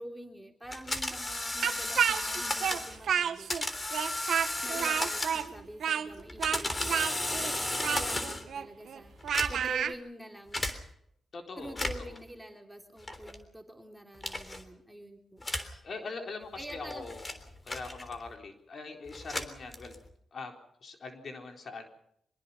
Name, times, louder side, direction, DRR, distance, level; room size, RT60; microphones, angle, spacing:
voice 1, 0.0-3.5 4.6-10.7 11.6-15.5 16.6-17.1, right 1 dB, 5° right, 2 dB, 3.3 m, -46 dB
sound 1, 0.7-3.0 3.5-5.6 6.2-8.5 9.2-9.8 10.5-10.8 11.6-12.2 13.1-13.4 14.2-14.6 15.4-15.8 16.6-18.3 19.1-20.1, left 2 dB, 25° left, 3.5 m, -34 dB
Speech, 1.6-3.6 3.9-9.9, right 8 dB, 80° right, 1.4 m, -30 dB
voice 2, 11.3-11.8 12.1-12.2 15.8-17.4 17.6-20.0 20.3-20.5 20.8-21.9, left 4 dB, 60° left, 3 dB, 4.0 m, -42 dB
24.5 x 21.5 x 5.6 m, 0.73 s
cardioid pair, 70°, 0 cm